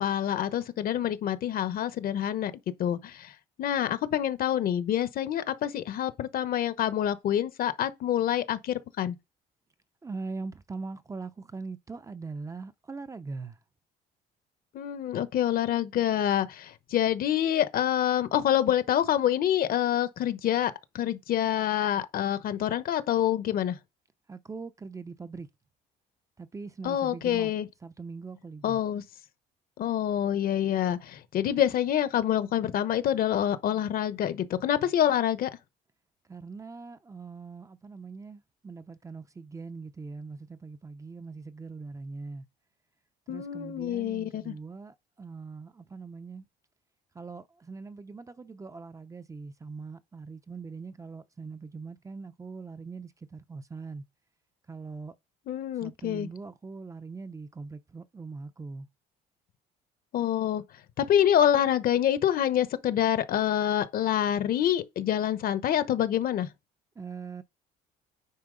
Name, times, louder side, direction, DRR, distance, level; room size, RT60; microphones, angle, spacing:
voice 1, 0.0-2.5 2.8-3.3 3.6-9.2 14.7-23.8 26.8-27.7 28.6-29.0 29.8-35.5 43.3-44.5 55.5-56.3 60.1-60.6 61.0-66.5, left 10 dB, 60° left, 1.0 m, -26 dB
voice 2, 10.0-13.6 24.3-25.5 26.4-27.5 27.8-28.8 36.3-42.5 43.3-46.4 47.1-54.0 54.7-55.1 55.8-58.9 67.0-67.4, right 4 dB, 20° right, 0.6 m, -41 dB
9.5 x 4.6 x 3.8 m
cardioid pair, 110°, 17 cm